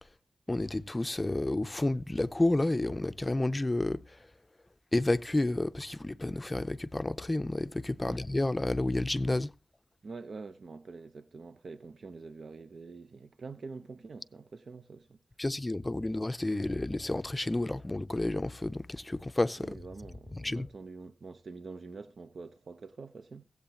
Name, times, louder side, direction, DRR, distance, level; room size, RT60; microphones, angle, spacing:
voice 1, 0.5-4.0 4.9-9.5 15.4-19.8 20.4-20.7, left 2 dB, 25° left, 0.5 m, -30 dB
voice 2, 10.0-15.2 19.6-23.4, right 4 dB, 70° right, 0.6 m, -46 dB
17.0 x 8.1 x 2.9 m
cardioid pair, 70°, 0 cm